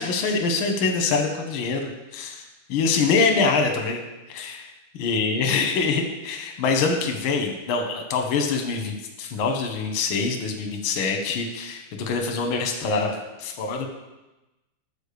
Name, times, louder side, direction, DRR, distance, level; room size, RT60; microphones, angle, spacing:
voice 1, 0.0-2.4 2.7-4.0 4.3-4.6 5.0-13.9, left 4 dB, 65° left, 3 dB, 1.3 m, -24 dB
8.4 x 5.0 x 6.7 m, 1.0 s
omnidirectional pair, 3.6 m